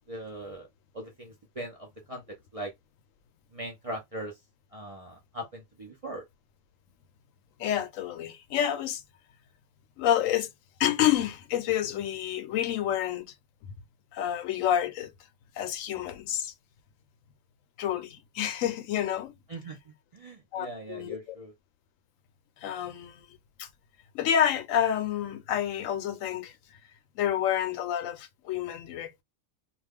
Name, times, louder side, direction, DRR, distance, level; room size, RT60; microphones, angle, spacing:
voice 1, 0.1-0.7 0.9-2.7 3.5-4.4 4.7-6.2 19.5-21.5, right 1 dB, 40° right, 0.5 m, -40 dB
voice 2, 7.6-9.0 10.0-10.5 10.8-13.3 14.1-15.1 15.6-16.5 17.8-19.3 20.5-21.2 22.6-23.3 23.6-23.7 24.1-26.6 27.2-29.2, left 10 dB, 80° left, 0.9 m, -28 dB
2.3 x 2.2 x 3.4 m
omnidirectional pair, 1.4 m